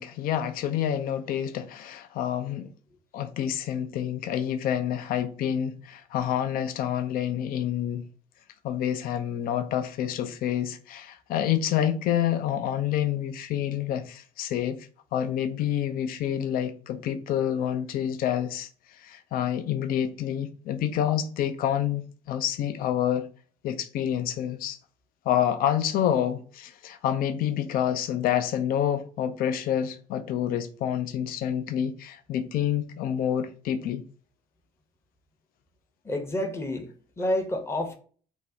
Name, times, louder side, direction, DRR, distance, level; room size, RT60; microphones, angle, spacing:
voice 1, 0.0-2.7 3.1-8.0 8.6-14.8 15.1-18.7 19.0-23.3 23.6-24.8 25.3-34.0, left 10 dB, 50° left, 0.4 m, -28 dB
voice 2, 36.1-36.9 37.2-37.9, left 1 dB, 15° left, 0.7 m, -28 dB
2.7 x 2.0 x 3.3 m
hypercardioid pair, 55°, 19 cm